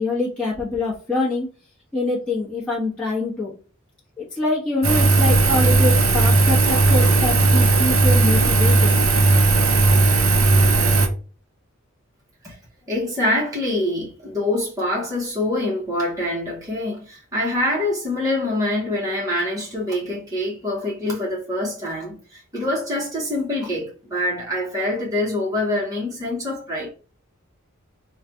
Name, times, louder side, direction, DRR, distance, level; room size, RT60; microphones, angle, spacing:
voice 1, 0.0-1.5 1.9-3.5 4.2-9.0, left 2 dB, 5° left, 1.1 m, -25 dB
Engine, 4.8-11.1, right 3 dB, 85° right, 0.8 m, -16 dB
voice 2, 12.9-26.9, left 1 dB, 15° right, 1.0 m, -25 dB
3.2 x 2.4 x 4.3 m
head